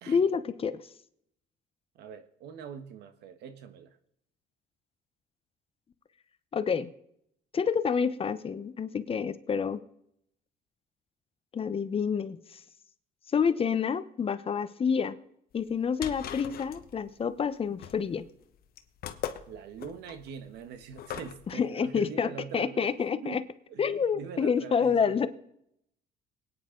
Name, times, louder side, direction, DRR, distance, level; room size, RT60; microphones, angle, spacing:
voice 1, 0.1-0.8 6.5-6.9 7.5-9.8 11.5-12.4 13.3-15.2 15.5-18.3 21.5-23.4 23.8-25.3, left 6 dB, 35° left, 13 dB, 0.9 m, -28 dB
voice 2, 1.9-4.0 19.5-23.4 23.7-25.3, right 7 dB, 80° right, 10 dB, 1.4 m, -43 dB
sound 1, 15.6-21.5, left 10 dB, 60° left, 1.2 m, -41 dB
23.0 x 9.6 x 3.9 m, 0.75 s
cardioid pair, 110°, 17 cm